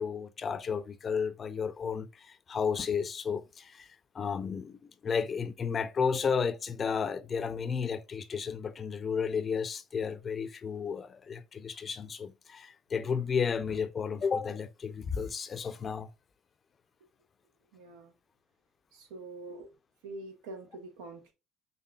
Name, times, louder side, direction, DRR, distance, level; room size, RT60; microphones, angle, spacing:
voice 1, 0.0-3.9 4.1-16.1, left 6 dB, 35° left, 0.5 m, -33 dB
voice 2, 17.7-18.1 18.9-19.7 20.0-21.3, right 2 dB, 85° right, 1.2 m, -45 dB
5.8 x 3.6 x 2.4 m
supercardioid pair, 85°, 0 cm